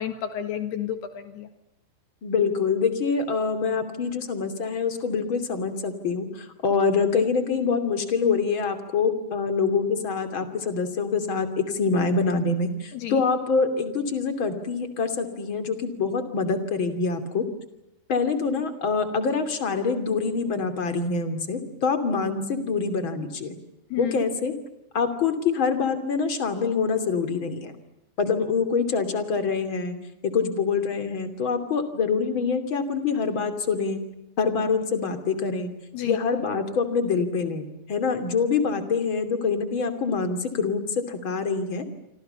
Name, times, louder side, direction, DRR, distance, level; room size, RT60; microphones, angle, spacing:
voice 1, 0.0-1.5 12.9-13.2 23.9-24.2 35.9-36.2, left 10 dB, 70° left, 9 dB, 3.7 m, -31 dB
voice 2, 2.2-17.4 18.1-23.6 24.0-24.5 24.9-27.7 28.2-30.0 30.2-34.0 34.4-35.7 36.0-41.9, left 5 dB, 30° left, 9 dB, 3.0 m, -25 dB
28.5 x 25.5 x 6.9 m, 0.87 s
omnidirectional pair, 4.9 m